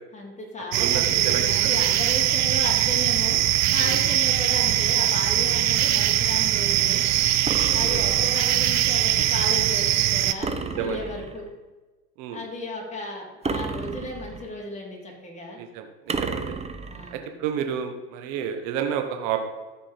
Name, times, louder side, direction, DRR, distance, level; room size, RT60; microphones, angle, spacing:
voice 1, 0.1-3.4 3.7-7.0 7.7-11.5 12.3-15.6 16.9-17.2, left 2 dB, 20° left, -2 dB, 3.4 m, -34 dB
sound 1, 0.7-10.3, right 13 dB, 50° right, 0.7 m, -21 dB
voice 2, 0.8-1.8 3.8-4.0 7.5-8.0 10.6-11.0 12.2-12.4 15.6-16.5 17.1-19.4, right 8 dB, 65° right, 6 dB, 1.3 m, -31 dB
sound 2, 7.5-8.5 10.4-11.5 13.4-14.6 16.1-17.2, right 4 dB, 20° right, 0.8 m, -32 dB
14.0 x 5.0 x 5.1 m, 1.2 s
supercardioid pair, 100°, 35 cm